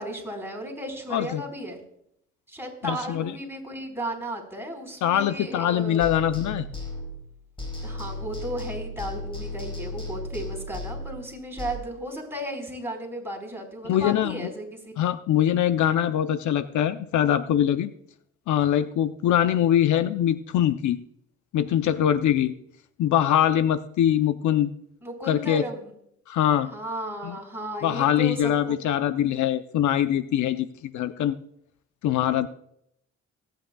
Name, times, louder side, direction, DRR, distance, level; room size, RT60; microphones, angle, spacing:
voice 1, 0.0-1.8 2.5-6.0 7.8-15.0 25.0-25.9 26.7-28.8, right 1 dB, 5° right, 0 dB, 4.4 m, -34 dB
voice 2, 1.1-1.4 2.8-3.3 5.0-6.7 13.8-14.5 15.0-17.9 18.5-21.0 21.5-22.6 23.0-24.7 25.3-25.6 26.3-26.7 27.2-27.4 27.8-31.4 32.0-32.5, left 10 dB, 70° left, 11 dB, 0.7 m, -23 dB
sound 1, 6.0-7.3 7.6-11.7, left 2 dB, 15° left, 5.1 m, -35 dB
24.0 x 9.3 x 2.3 m, 0.72 s
cardioid pair, 90°, 30 cm